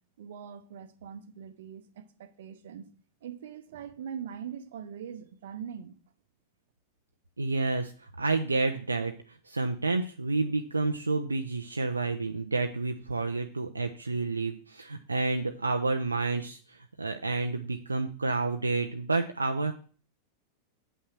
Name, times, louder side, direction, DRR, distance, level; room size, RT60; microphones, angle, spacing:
voice 1, 0.2-2.9 3.2-6.0, right 8 dB, 60° right, 1.0 m, -42 dB
voice 2, 7.4-9.1 9.5-19.7, right 3 dB, 80° right, 0.7 m, -29 dB
8.5 x 5.7 x 6.1 m
figure-of-eight pair, 90°, 0 cm